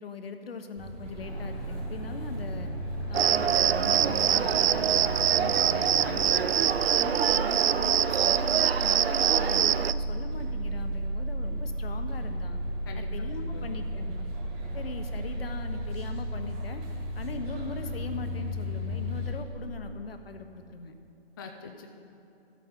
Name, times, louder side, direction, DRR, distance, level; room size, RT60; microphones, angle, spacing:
voice 1, 0.0-2.7 3.1-6.2 6.9-12.6 12.9-14.3 14.7-16.8 17.1-20.9, left 4 dB, 65° left, 7 dB, 1.2 m, -40 dB
sound 1, 0.8-19.3, right 1 dB, 25° right, 3.0 m, -34 dB
sound 2, 1.2-6.6, left 1 dB, 85° left, 2.5 m, -44 dB
Cricket, 3.1-9.9, right 9 dB, 70° right, 0.5 m, -24 dB
voice 2, 6.0-7.0 12.9-13.1 13.4-13.6 21.4-21.9, left 5 dB, 20° left, 2 dB, 0.5 m, -43 dB
13.5 x 8.7 x 5.3 m, 2.7 s
hypercardioid pair, 150°, 32 cm